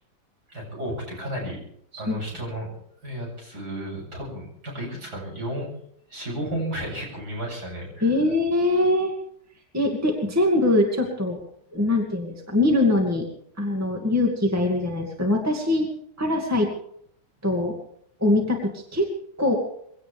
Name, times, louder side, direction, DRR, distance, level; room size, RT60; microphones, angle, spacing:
voice 1, 0.5-1.6 2.0-2.7 3.0-5.7 6.1-8.1, right 1 dB, 50° right, -3 dB, 8.8 m, -33 dB
voice 2, 8.0-9.1 9.7-11.4 11.7-13.3 13.6-15.9 16.2-16.7 17.4-17.7 18.2-19.1 19.4-19.5, left 2 dB, 10° right, 1 dB, 2.2 m, -22 dB
23.5 x 17.5 x 3.6 m, 0.68 s
omnidirectional pair, 2.1 m